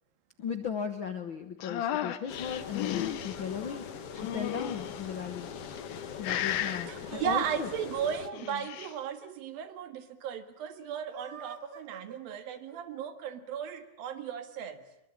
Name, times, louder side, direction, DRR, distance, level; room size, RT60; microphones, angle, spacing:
voice 1, 0.4-3.8 4.1-5.5 6.2-7.7, left 7 dB, 70° left, 8 dB, 1.1 m, -36 dB
sound 1, 1.6-3.4 4.2-5.0 5.7-6.0 6.2-6.9 8.2-8.9, left 11 dB, 90° left, 3.1 m, -34 dB
sound 2, 2.3-8.3, left 7 dB, 50° left, 2.0 m, -42 dB
sound 3, 5.9-9.3 9.5-9.6 9.8-9.9 10.9-13.1, right 6 dB, 45° right, 2.2 m, -48 dB
voice 2, 6.9-14.8, right 8 dB, 80° right, 9 dB, 3.6 m, -36 dB
24.5 x 23.5 x 8.9 m, 0.81 s
omnidirectional pair, 4.1 m